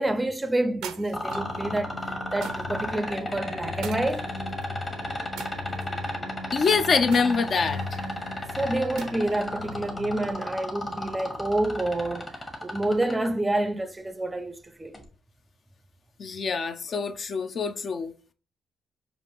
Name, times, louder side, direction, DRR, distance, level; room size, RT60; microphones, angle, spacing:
voice 1, 0.0-4.3 8.6-15.0, right 1 dB, 15° right, 0.4 m, -28 dB
sound 1, 0.8-1.6 2.4-2.9 3.8-4.6 5.4-6.1 7.1-8.0 9.0-9.5, right 9 dB, 90° right, 0.4 m, -42 dB
sound 2, 1.1-13.3 14.9-15.0, left 1 dB, 30° left, 1.3 m, -33 dB
sound 3, 1.3-10.3, left 2 dB, 80° left, 0.8 m, -38 dB
voice 2, 6.5-8.0 16.2-18.1, left 5 dB, 50° left, 0.4 m, -25 dB
5.1 x 2.5 x 3.0 m
cardioid pair, 90°, 0 cm